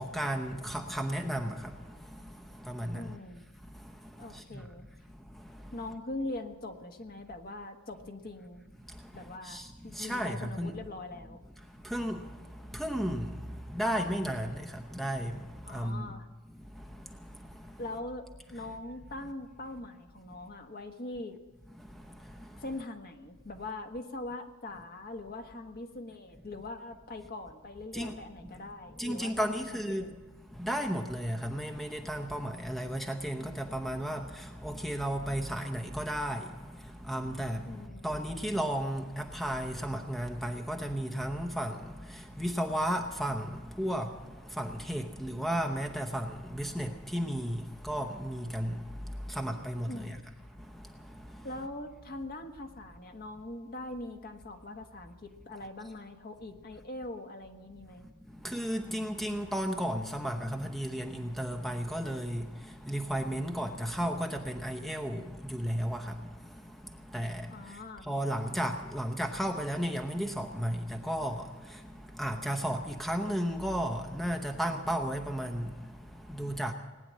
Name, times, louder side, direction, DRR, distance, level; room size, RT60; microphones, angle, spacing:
voice 1, 0.0-3.2 3.6-5.8 8.8-10.8 11.6-16.1 16.5-17.8 21.7-22.6 27.9-28.6 28.9-30.1 30.5-50.2 50.5-51.5 58.0-76.7, equal, ahead, 0.8 m, -35 dB
voice 2, 2.9-3.4 4.2-4.8 5.7-8.6 9.1-11.4 15.7-16.3 17.8-21.4 22.6-30.2 37.7-38.1 49.9-50.2 51.4-58.1 67.5-68.1, left 2 dB, 45° left, 1.4 m, -42 dB
19.0 x 9.9 x 7.5 m
head